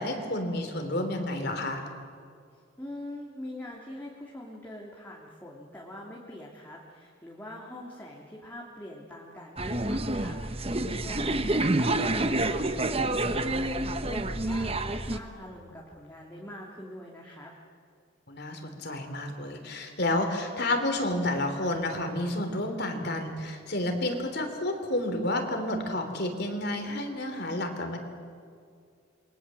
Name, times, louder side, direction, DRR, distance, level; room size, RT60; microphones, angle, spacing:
voice 1, 0.0-1.8 18.3-28.0, left 1 dB, 50° left, 5 dB, 3.4 m, -30 dB
voice 2, 2.5-17.5, left 1 dB, 10° left, -3 dB, 2.9 m, -44 dB
sound 1, 9.6-15.2, right 2 dB, 30° right, 1.1 m, -28 dB
28.5 x 23.0 x 7.7 m, 2.3 s
head